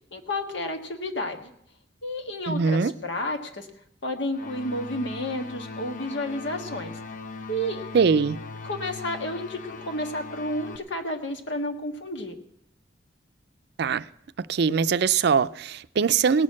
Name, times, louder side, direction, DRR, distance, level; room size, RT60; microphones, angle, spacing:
voice 1, 0.1-1.5 2.0-3.7 4.0-7.0 7.5-7.8 8.6-12.4, left 1 dB, 80° left, 1.5 m, -31 dB
voice 2, 2.5-2.9 7.9-8.4 13.8-14.1 14.4-16.4, right 6 dB, 60° right, 0.4 m, -22 dB
sound 1, 4.3-10.8, left 4 dB, 45° left, 0.8 m, -39 dB
17.5 x 6.4 x 7.4 m
head